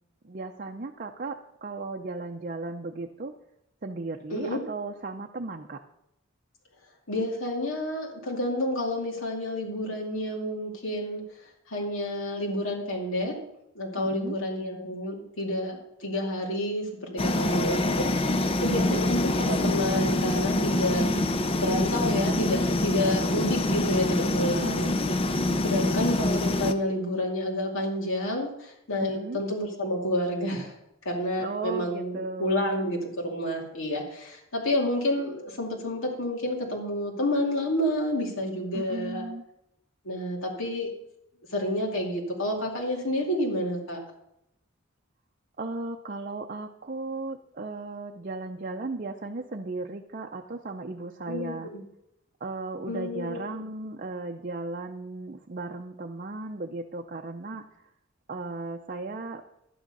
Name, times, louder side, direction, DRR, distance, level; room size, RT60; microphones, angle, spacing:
voice 1, 0.2-3.3 3.8-5.8 14.0-14.4 18.7-19.0 20.9-21.5 24.5-25.0 25.5-26.0 29.0-29.4 31.4-32.7 38.7-39.4 45.6-51.7 52.4-57.6 58.3-59.4, right 3 dB, 40° right, 3 dB, 0.7 m, -36 dB
voice 2, 7.1-13.4 13.7-21.1 21.6-24.9 25.6-30.7 31.0-39.2 40.0-40.9 41.5-44.0 51.3-51.8 52.8-53.4, left 1 dB, 70° left, -1 dB, 2.5 m, -29 dB
sound 1, 17.2-26.7, left 1 dB, 25° left, 0.6 m, -25 dB
12.0 x 9.0 x 5.4 m, 0.81 s
head